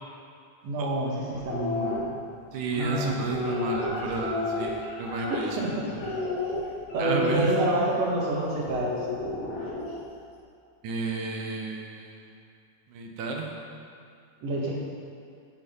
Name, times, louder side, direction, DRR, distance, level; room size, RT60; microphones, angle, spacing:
voice 1, 0.6-2.2 2.7-3.4 5.3-5.9 6.9-9.0 14.4-14.8, right 1 dB, 50° right, -3 dB, 2.7 m, -28 dB
sound 1, 1.3-1.9 2.7-5.6 6.0-7.5 8.7-10.0, left 3 dB, 75° left, 5.4 m, -32 dB
voice 2, 2.5-5.5 7.0-7.5 10.8-12.2 12.9-13.5, right 4 dB, 65° right, 1 dB, 2.2 m, -31 dB
12.5 x 7.5 x 5.5 m, 2.3 s
omnidirectional pair, 4.2 m